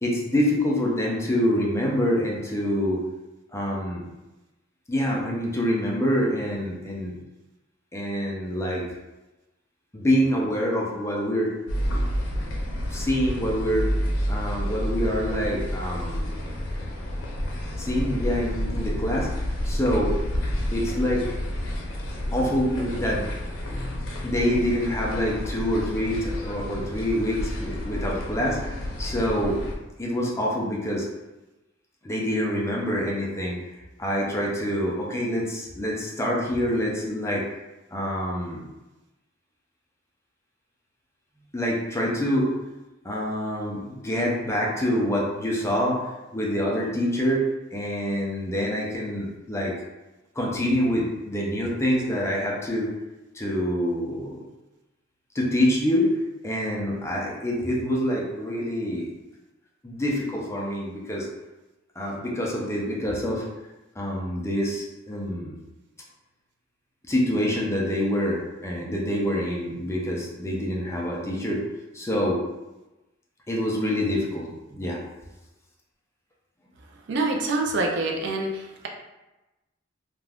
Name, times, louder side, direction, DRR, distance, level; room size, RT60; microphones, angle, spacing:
voice 1, 0.0-3.0 3.5-4.0 4.9-7.2 7.9-8.8 9.9-11.5 12.9-13.9 14.3-16.3 17.8-19.3 19.6-20.1 20.7-21.2 22.3-23.3 24.2-29.6 30.0-31.1 32.0-33.6 34.0-37.4 37.9-38.6 41.5-42.5 43.0-46.0 46.3-47.4 47.7-49.7 50.4-52.9 53.3-54.4 55.3-56.1 56.4-59.1 59.8-61.3 62.0-63.4 64.0-65.6 67.1-71.6 71.9-72.4 73.5-75.0, equal, 15° left, -3 dB, 0.5 m, -26 dB
sound 1, 11.7-29.7, equal, 85° left, 0.6 m, -30 dB
voice 2, 77.1-78.9, right 2 dB, 65° right, 2 dB, 0.4 m, -26 dB
2.5 x 2.2 x 3.3 m, 1.0 s
head